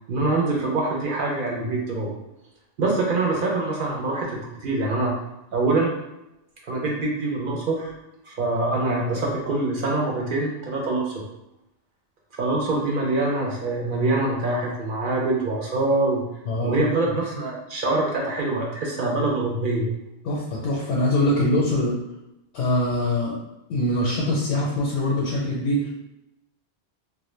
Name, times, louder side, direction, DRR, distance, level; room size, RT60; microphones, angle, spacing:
voice 1, 0.1-2.2 2.8-5.1 5.5-5.9 6.6-7.9 8.2-11.1 12.3-16.2 16.6-19.9, right 2 dB, 60° right, -2 dB, 0.6 m, -24 dB
voice 2, 16.5-16.9 20.2-22.0 22.5-23.4 23.7-25.9, left 1 dB, 85° left, -5 dB, 0.9 m, -23 dB
2.1 x 2.1 x 3.0 m, 0.90 s
omnidirectional pair, 1.1 m